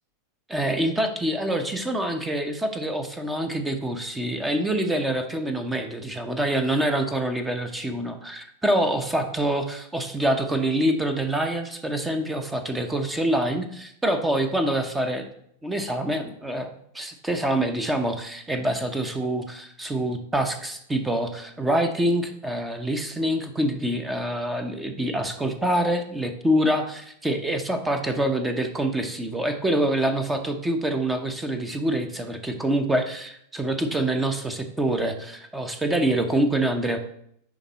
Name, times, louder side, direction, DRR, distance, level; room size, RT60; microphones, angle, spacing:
voice 1, 0.5-15.3 15.6-37.0, right 1 dB, 10° right, 7 dB, 0.8 m, -26 dB
10.0 x 3.6 x 4.1 m, 0.71 s
figure-of-eight pair, 90°, 0 cm